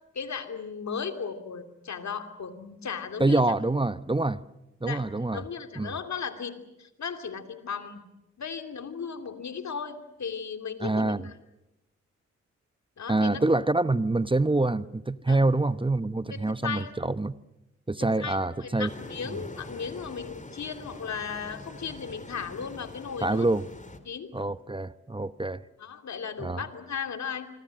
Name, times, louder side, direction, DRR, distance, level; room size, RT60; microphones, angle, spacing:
voice 1, 0.1-3.4 4.8-8.0 8.4-11.3 13.0-13.4 15.3-15.4 16.3-16.9 18.2-23.5 24.0-24.3 25.8-27.5, left 6 dB, 65° left, 2.8 m, -36 dB
voice 2, 3.2-4.4 4.8-5.4 5.8-5.9 10.8-11.3 13.1-17.3 17.9-18.9 23.2-23.6 24.3-25.6 26.4-26.6, right 2 dB, 15° right, 0.9 m, -26 dB
sound 1, 18.9-24.0, left 2 dB, 25° left, 3.0 m, -44 dB
26.0 x 24.5 x 7.6 m
supercardioid pair, 45°, 29 cm